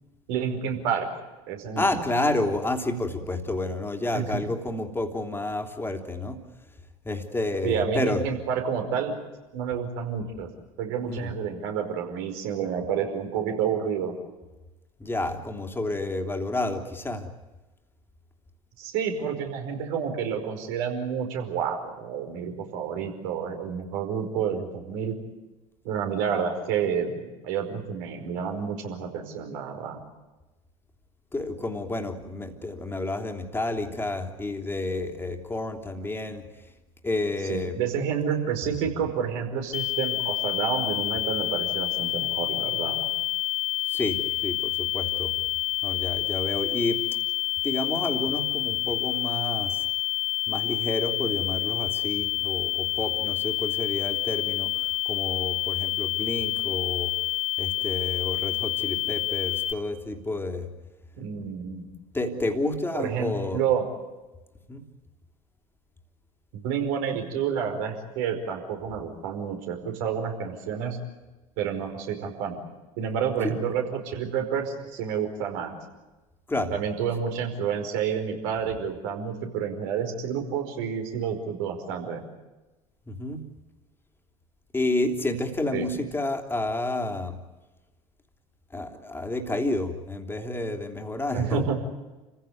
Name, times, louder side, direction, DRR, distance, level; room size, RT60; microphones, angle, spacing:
voice 1, 0.3-1.0 1.5-2.1 4.1-4.4 7.6-9.1 9.5-10.5 10.8-14.2 18.8-25.1 25.8-30.0 37.4-43.0 61.2-61.8 62.9-63.9 66.5-71.0 71.6-72.6 73.0-75.7 76.7-82.2 85.7-85.9 91.3-91.7, right 7 dB, 60° right, 4 dB, 5.1 m, -29 dB
voice 2, 1.8-6.4 7.0-8.2 11.1-11.3 15.0-17.3 31.3-36.4 37.0-37.8 43.9-45.3 45.8-47.0 47.6-49.8 50.5-54.7 55.1-57.1 57.6-60.7 62.1-63.6 64.7-64.8 73.4-73.5 76.5-76.7 83.1-83.4 84.7-87.4 88.7-91.7, left 2 dB, 10° left, 4 dB, 3.4 m, -30 dB
sound 1, 39.7-59.7, left 17 dB, 40° left, 2.0 m, -28 dB
29.5 x 16.0 x 9.6 m, 1.1 s
figure-of-eight pair, 65°, 18 cm